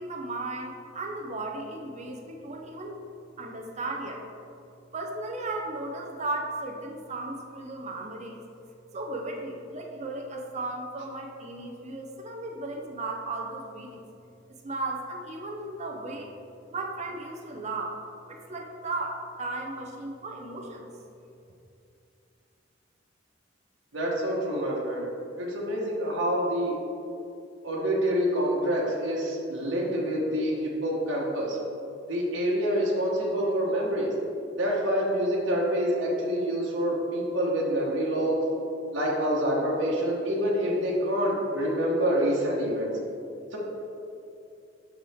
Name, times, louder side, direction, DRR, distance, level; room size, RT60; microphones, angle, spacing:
voice 1, 0.0-3.0 3.4-4.2 4.9-8.4 8.9-14.0 14.6-16.3 16.7-18.0 18.3-20.9, right 2 dB, 35° right, 1 dB, 0.6 m, -35 dB
voice 2, 23.9-25.0 25.4-26.8 27.6-31.6 32.1-34.1 34.5-38.4 38.9-42.9 43.5-43.6, equal, 85° right, -4 dB, 1.3 m, -27 dB
7.2 x 6.1 x 3.5 m, 2.6 s
head